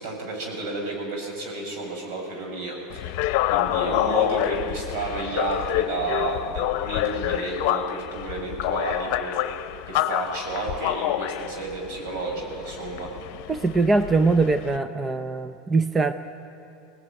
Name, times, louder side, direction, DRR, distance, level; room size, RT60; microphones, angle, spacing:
voice 1, 0.0-3.2 3.5-9.4 9.9-13.1, right 3 dB, 65° right, 0 dB, 7.9 m, -31 dB
sound 1, 2.9-14.8, left 14 dB, 65° left, 0.8 m, -28 dB
voice 2, 13.5-16.1, right 3 dB, 20° right, 9 dB, 0.7 m, -22 dB
24.0 x 18.5 x 9.3 m, 2.8 s
supercardioid pair, 105°, 0 cm